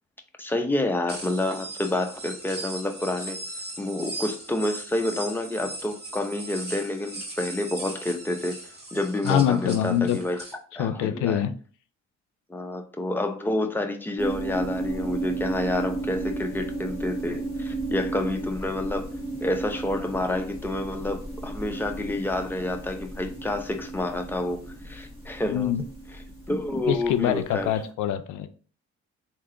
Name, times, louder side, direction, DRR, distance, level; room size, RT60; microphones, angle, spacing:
voice 1, 0.4-3.4 3.8-8.6 8.9-10.4 10.7-11.4 12.5-19.1 19.4-24.6 24.8-25.7 26.5-27.7, left 1 dB, 5° left, 0.7 m, -29 dB
sound 1, 1.1-10.5, right 2 dB, 35° right, 1.7 m, -38 dB
voice 2, 9.2-10.2 10.8-11.5 25.5-25.8 26.9-28.5, left 10 dB, 85° left, 0.5 m, -24 dB
sound 2, 14.2-27.6, right 2 dB, 15° right, 1.5 m, -33 dB
3.6 x 2.8 x 3.7 m
cardioid pair, 90°, 30 cm